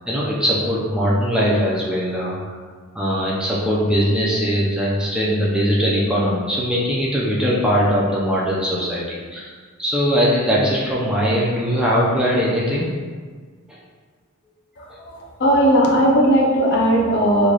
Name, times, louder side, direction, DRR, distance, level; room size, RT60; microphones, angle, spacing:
voice 1, 0.1-2.5 2.9-9.5 9.8-12.9 13.7-13.8 14.9-15.0, equal, 5° right, -6 dB, 0.4 m, -20 dB
voice 2, 14.8-17.5, equal, 50° left, -2 dB, 0.6 m, -17 dB
3.1 x 2.2 x 3.8 m, 1.5 s
head